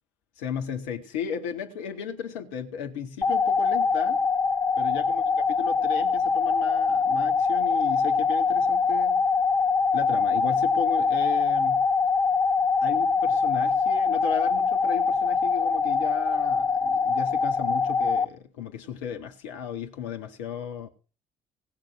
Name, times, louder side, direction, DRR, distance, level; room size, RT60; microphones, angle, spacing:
voice 1, 0.4-4.2 4.8-9.2 9.9-11.9 12.8-20.9, left 8 dB, 70° left, 1.9 m, -35 dB
sound 1, 3.2-18.2, left 5 dB, 20° left, 1.3 m, -23 dB
19.0 x 6.5 x 6.3 m
figure-of-eight pair, 50°, 16 cm